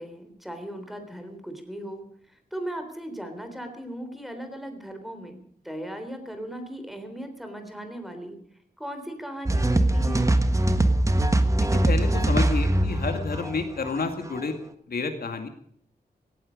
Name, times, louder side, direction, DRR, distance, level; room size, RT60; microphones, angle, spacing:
voice 1, 0.0-5.4 5.6-8.4 8.8-10.3, right 1 dB, ahead, 6 dB, 3.5 m, -37 dB
sound 1, 9.5-14.4, right 1 dB, 20° right, 1.4 m, -22 dB
voice 2, 11.6-14.5 14.9-15.5, left 4 dB, 65° left, 6 dB, 2.2 m, -30 dB
17.5 x 15.0 x 5.2 m, 0.63 s
wide cardioid pair, 135°, 17 cm